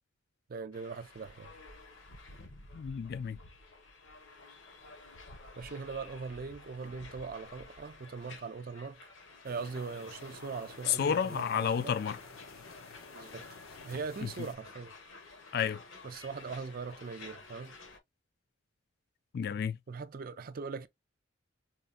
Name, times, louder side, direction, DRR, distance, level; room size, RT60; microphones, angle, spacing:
voice 1, 0.5-1.5 5.6-9.1 9.4-11.9 13.1-14.9 16.0-17.8 19.9-20.9, right 4 dB, 45° right, 0.4 m, -41 dB
sound 1, 0.7-18.0, left 3 dB, 65° left, 0.9 m, -52 dB
voice 2, 2.7-3.4 10.9-12.2 14.2-14.3 15.5-15.8 19.3-19.8, left 7 dB, 50° left, 0.3 m, -31 dB
sound 2, 9.4-14.6, left 4 dB, 90° left, 0.8 m, -52 dB
4.4 x 2.2 x 2.4 m
head